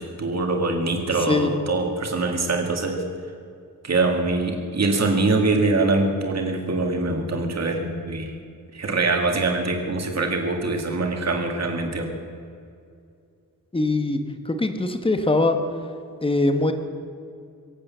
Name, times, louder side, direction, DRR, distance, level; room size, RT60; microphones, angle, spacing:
voice 1, 0.0-3.0 3.8-8.3 8.7-12.1, right 3 dB, 55° right, 3 dB, 2.1 m, -23 dB
voice 2, 13.7-14.2 14.4-15.6 16.2-16.7, left 2 dB, 15° left, 7 dB, 1.1 m, -21 dB
23.0 x 8.6 x 7.3 m, 2.4 s
wide cardioid pair, 175°, 32 cm